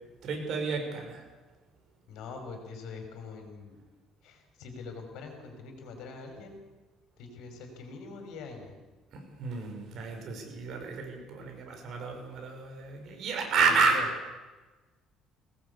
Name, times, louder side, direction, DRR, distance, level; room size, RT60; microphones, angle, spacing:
voice 1, 0.2-1.2 9.1-14.0, right 4 dB, 50° right, 3 dB, 6.0 m, -30 dB
voice 2, 2.1-3.8 4.2-6.6 7.2-8.8 13.7-14.1, left 4 dB, 70° left, 5 dB, 5.7 m, -43 dB
22.5 x 19.0 x 8.4 m, 1.3 s
cardioid pair, 160°, 0 cm